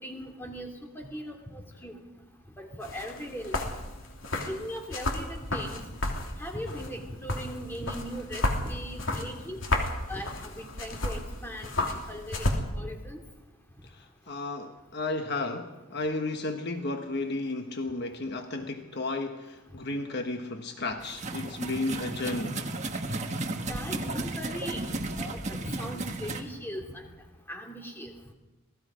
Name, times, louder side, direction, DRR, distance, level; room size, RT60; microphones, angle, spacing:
voice 1, 0.0-2.0 2.6-3.7 4.5-5.8 6.4-9.6 10.1-12.4 12.7-13.2 23.7-27.1 27.5-28.1, equal, 10° left, 2 dB, 2.8 m, -39 dB
sound 1, 2.8-12.6, left 2 dB, 65° left, 3.0 m, -33 dB
voice 2, 13.8-22.7, left 2 dB, 50° left, 5 dB, 1.3 m, -33 dB
sound 2, 21.0-26.4, right 2 dB, 35° right, 1.5 m, -34 dB
27.0 x 19.0 x 5.1 m, 1.1 s
head